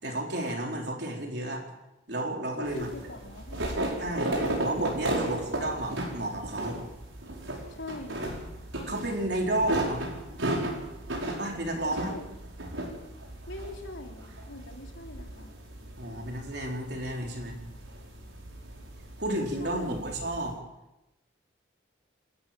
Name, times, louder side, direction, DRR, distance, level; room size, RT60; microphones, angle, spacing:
voice 1, 0.0-1.6 2.1-2.9 4.0-6.8 8.9-10.0 11.4-12.1 16.0-17.6 19.2-20.6, right 1 dB, 55° right, 1 dB, 4.5 m, -32 dB
voice 2, 2.6-3.7 7.7-8.3 11.4-12.2 13.5-15.6 19.6-20.0, left 1 dB, 80° left, 2 dB, 3.6 m, -43 dB
sound 1, 2.6-20.5, right 1 dB, 85° right, 5.2 m, -35 dB
28.5 x 13.0 x 7.6 m, 0.94 s
head